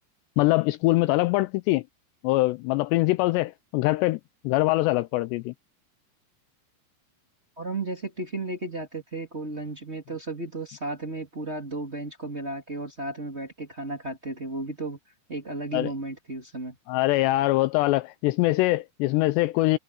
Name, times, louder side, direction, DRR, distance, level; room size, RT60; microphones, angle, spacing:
voice 1, 0.4-1.8 2.2-5.5 15.7-15.9 16.9-19.8, left 19 dB, 85° left, 2.6 m, -23 dB
voice 2, 7.6-15.0 15.3-16.8, right 2 dB, 20° right, 2.2 m, -34 dB
omnidirectional pair, 5.2 m